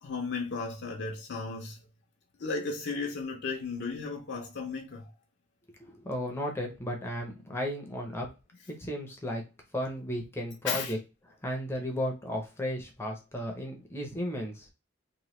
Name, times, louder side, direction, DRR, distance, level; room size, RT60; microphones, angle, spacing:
voice 1, 0.0-1.8 2.4-5.1 10.6-10.9, left 4 dB, 60° left, 0.5 m, -34 dB
voice 2, 5.8-8.3 8.7-9.4 9.7-11.0 11.4-14.7, equal, 15° left, 0.6 m, -34 dB
2.9 x 2.1 x 3.0 m
head